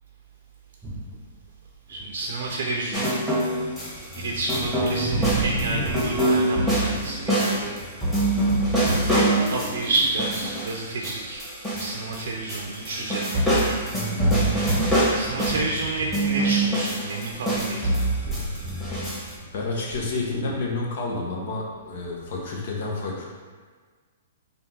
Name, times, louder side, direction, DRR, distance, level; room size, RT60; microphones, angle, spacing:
sound 1, 0.8-1.3 1.9-2.6 2.9-11.3 11.7-17.0 17.3-20.6, right 1 dB, 15° right, 0.7 m, -37 dB
voice 1, 1.9-3.2 4.2-7.7 9.5-11.4 11.8-13.8 15.1-18.1, right 2 dB, 65° right, 0 dB, 0.6 m, -30 dB
sound 2, 2.9-4.2 4.5-12.2 12.5-15.8 16.1-19.3, right 1 dB, 10° left, 1.5 m, -24 dB
voice 2, 19.5-23.2, left 3 dB, 60° left, -2 dB, 1.0 m, -29 dB
3.5 x 2.7 x 4.5 m, 1.5 s
hypercardioid pair, 135°, 0 cm